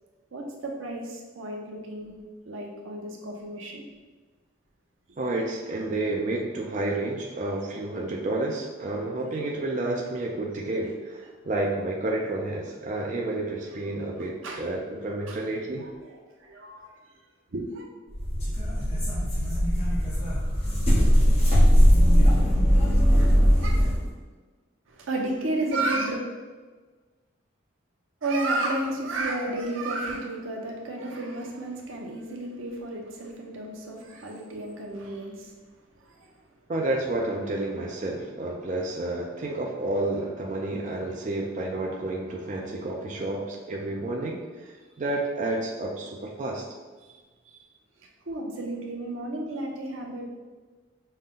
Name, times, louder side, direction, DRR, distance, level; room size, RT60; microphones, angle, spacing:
voice 1, 0.3-2.1 2.4-3.8 14.4-14.6 15.3-15.4 16.0-16.9 17.5-17.8 23.2-23.7 24.9-26.2 28.2-35.5 36.2-36.3 47.0-47.1 47.5-47.6 48.3-50.3, right 2 dB, 85° right, 0 dB, 0.7 m, -32 dB
voice 2, 5.2-15.8 36.7-46.6, right 2 dB, 40° right, -1 dB, 0.4 m, -30 dB
sound 1, 18.1-24.1, equal, 30° left, 1.1 m, -20 dB
5.4 x 2.2 x 3.7 m, 1.3 s
head